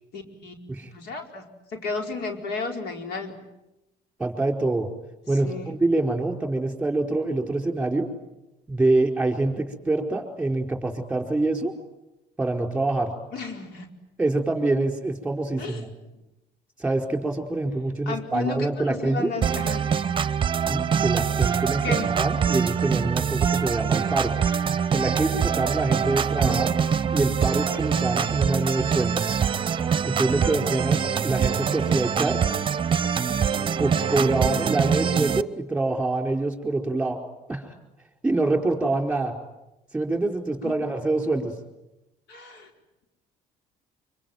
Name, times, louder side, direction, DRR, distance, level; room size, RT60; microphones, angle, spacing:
voice 1, 0.1-0.5 0.9-3.4 5.4-5.8 13.3-13.9 15.6-15.8 18.1-19.8 21.8-22.1 26.4-26.7 30.3-30.6 34.4-34.6 40.6-40.7 42.3-42.7, left 3 dB, 80° left, 3 dB, 4.8 m, -33 dB
voice 2, 4.2-4.9 5.3-8.1 8.7-11.7 12.4-13.1 14.2-15.9 16.8-19.3 20.6-24.3 24.9-26.7 27.1-29.2 30.0-32.4 33.8-37.2 37.5-37.7 38.2-39.3 39.9-41.5, right 2 dB, 5° right, 4 dB, 4.6 m, -25 dB
sound 1, 19.4-35.4, right 7 dB, 30° right, 0.9 m, -24 dB
25.0 x 24.5 x 9.3 m, 0.97 s
cardioid pair, 110°, 17 cm